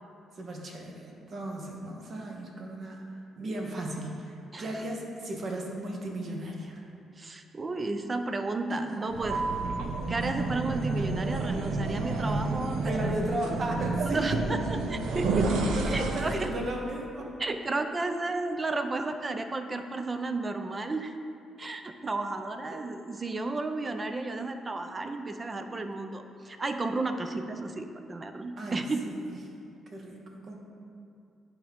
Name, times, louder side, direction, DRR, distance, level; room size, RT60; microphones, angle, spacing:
voice 1, 0.4-3.1 3.4-6.8 8.7-9.1 12.7-14.8 15.5-17.3 28.6-29.4 29.9-30.6, right 1 dB, 50° right, 0 dB, 1.1 m, -36 dB
voice 2, 7.2-9.4 10.1-13.1 14.0-15.5 15.9-16.5 17.4-21.1 21.6-29.0, right 2 dB, 30° right, 7 dB, 0.5 m, -33 dB
sound 1, 9.1-16.6, right 3 dB, 80° right, 0.6 m, -30 dB
10.5 x 3.7 x 3.5 m, 2.5 s
cardioid pair, 90°, 0 cm